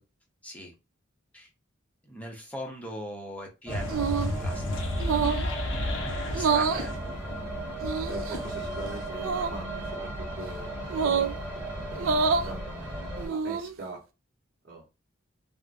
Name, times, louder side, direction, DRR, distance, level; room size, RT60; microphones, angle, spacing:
voice 1, 0.4-0.7 1.3-1.5 2.1-4.9 6.3-7.0, equal, 5° left, 1 dB, 0.7 m, -40 dB
sound 1, 3.7-9.1, left 2 dB, 70° left, 0.6 m, -34 dB
sound 2, 3.7-13.3, right 1 dB, 10° right, 1.2 m, -36 dB
sound 3, 3.9-4.4 5.0-5.5 6.3-6.9 7.8-8.4 9.2-9.5 10.9-11.3 11.9-12.5 13.2-13.7, right 5 dB, 85° right, 0.4 m, -27 dB
voice 2, 8.0-14.0 14.6-14.8, right 2 dB, 55° right, -6 dB, 0.8 m, -42 dB
3.4 x 2.1 x 2.5 m, 0.28 s
head